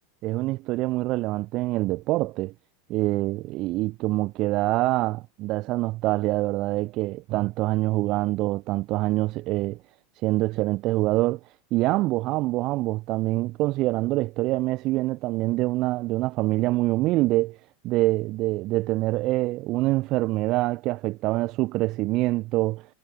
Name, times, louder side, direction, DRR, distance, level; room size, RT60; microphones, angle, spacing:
voice 1, 0.2-2.5 2.9-9.8 10.1-11.4 11.7-17.6 17.8-22.9, right 19 dB, 45° right, 4.1 m, -25 dB
figure-of-eight pair, 85°, 0 cm